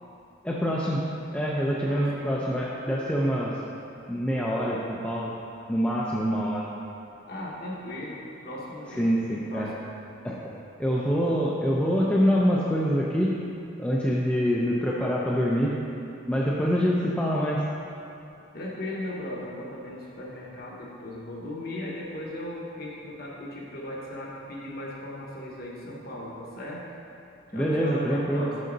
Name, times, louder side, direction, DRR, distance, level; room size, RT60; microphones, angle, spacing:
voice 1, 0.4-1.0 1.3-3.5 4.1-5.3 5.7-6.6 9.0-9.7 10.2-10.4 10.8-13.4 13.8-15.8 16.3-17.6 27.5-28.5, equal, 5° left, -5 dB, 0.4 m, -25 dB
voice 2, 1.7-2.4 7.3-9.7 18.5-26.9 27.5-28.6, left 1 dB, 45° left, -3 dB, 1.0 m, -37 dB
6.4 x 5.6 x 3.9 m, 2.7 s
head